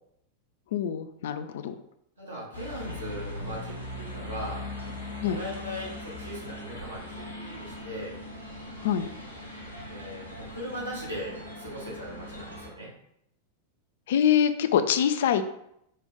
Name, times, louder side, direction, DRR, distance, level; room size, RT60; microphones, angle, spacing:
voice 1, 0.7-1.7 5.2-5.4 8.8-9.1 14.1-15.4, left 9 dB, 55° left, 10 dB, 0.3 m, -24 dB
voice 2, 2.2-4.6 5.2-8.1 9.8-12.9, equal, 80° right, -5 dB, 1.8 m, -39 dB
sound 1, 2.5-12.7, left 1 dB, 90° left, 0.9 m, -40 dB
5.3 x 2.5 x 3.6 m, 0.76 s
figure-of-eight pair, 90°, 0 cm